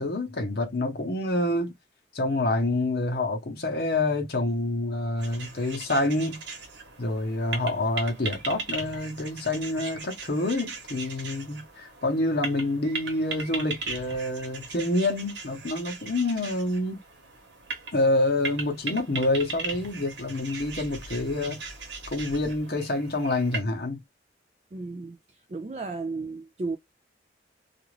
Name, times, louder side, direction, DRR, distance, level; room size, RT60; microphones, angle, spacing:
voice 1, 0.0-1.7 2.1-6.4 7.0-17.0 17.9-21.6 22.1-24.0, left 2 dB, 55° left, 0.8 m, -27 dB
sound 1, 5.2-23.6, right 4 dB, 75° right, 1.1 m, -38 dB
voice 2, 24.7-25.2 25.5-26.8, right 3 dB, 35° right, 0.3 m, -33 dB
2.4 x 2.4 x 3.0 m
head